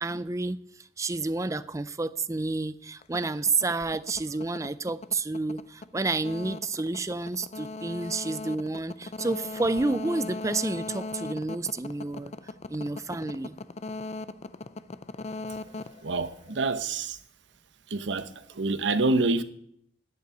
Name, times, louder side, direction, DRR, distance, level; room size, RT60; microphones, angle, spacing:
voice 1, 0.0-12.3 12.7-13.6, right 3 dB, 15° right, 0.4 m, -30 dB
sound 1, 3.0-16.9, left 3 dB, 35° left, 0.5 m, -39 dB
voice 2, 16.0-17.2 17.9-19.4, right 3 dB, 80° right, 0.9 m, -27 dB
10.5 x 8.3 x 9.2 m
head